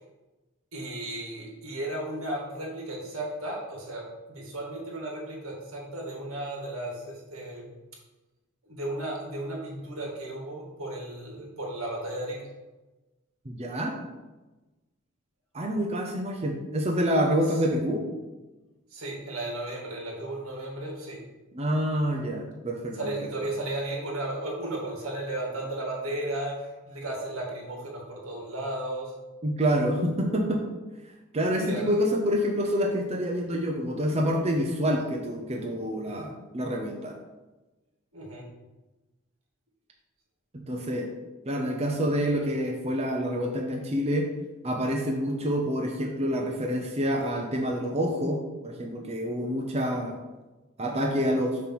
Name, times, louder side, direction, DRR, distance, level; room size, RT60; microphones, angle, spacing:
voice 1, 0.7-7.7 8.6-12.5 17.6-17.8 18.9-21.2 22.9-29.1 31.6-31.9 38.1-38.5, right 1 dB, 85° right, -1 dB, 2.1 m, -34 dB
voice 2, 13.4-13.9 15.5-18.0 21.5-23.1 29.4-30.6 31.3-37.1 40.5-41.1 41.5-44.3 44.6-50.2 50.8-51.6, equal, 30° right, 0 dB, 0.7 m, -27 dB
6.9 x 3.3 x 6.0 m, 1.1 s
head